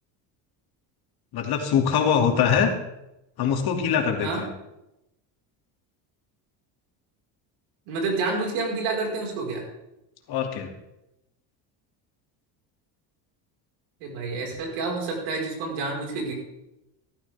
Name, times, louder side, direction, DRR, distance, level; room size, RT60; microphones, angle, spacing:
voice 1, 1.3-2.7 3.4-4.5 10.3-10.7, left 7 dB, 60° left, 3 dB, 2.6 m, -23 dB
voice 2, 7.9-9.6 14.0-16.3, right 3 dB, 90° right, -1 dB, 5.0 m, -29 dB
16.0 x 13.0 x 3.6 m, 0.89 s
cardioid pair, 110°, 43 cm